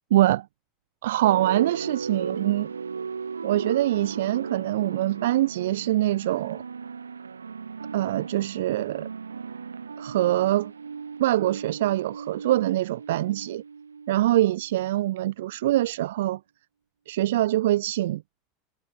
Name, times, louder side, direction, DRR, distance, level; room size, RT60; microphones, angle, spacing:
voice 1, 0.1-0.5 1.0-2.7 3.4-6.6 7.9-9.1 10.0-10.7 11.2-13.6 14.1-16.4 17.1-18.2, right 15 dB, 70° right, 0.7 m, -24 dB
sound 1, 1.2-14.6, right 5 dB, 85° right, 2.1 m, -36 dB
hypercardioid pair, 85°, 0 cm